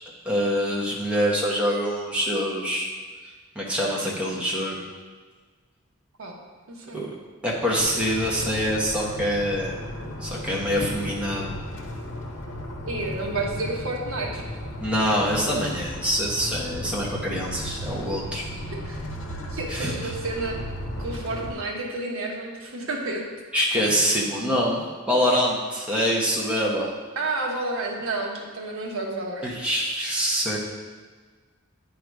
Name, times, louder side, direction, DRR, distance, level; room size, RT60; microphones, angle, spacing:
voice 1, 0.2-2.9 3.5-4.8 6.9-7.1 7.4-9.8 10.2-11.5 14.8-18.4 19.7-20.1 23.5-26.9 29.4-30.6, equal, 5° right, -4 dB, 1.1 m, -25 dB
voice 2, 6.7-7.0 12.9-14.5 18.7-19.0 19.5-20.6 21.0-23.2 27.2-29.5, right 2 dB, 80° right, 0 dB, 1.2 m, -30 dB
sound 1, 7.8-21.5, equal, 65° left, 0.8 m, -35 dB
9.8 x 3.9 x 4.8 m, 1.5 s
head